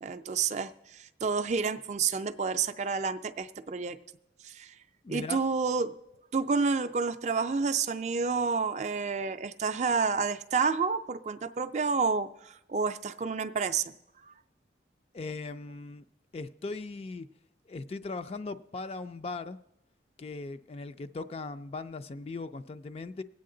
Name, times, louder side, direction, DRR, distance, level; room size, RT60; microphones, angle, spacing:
voice 1, 0.0-4.0 4.4-4.7 5.1-5.9 6.3-13.8, right 5 dB, 40° right, 0.4 m, -29 dB
voice 2, 5.0-5.4 15.1-16.1 16.3-17.3 17.7-19.6 20.2-23.2, left 3 dB, 35° left, 0.3 m, -39 dB
20.0 x 8.4 x 3.8 m
head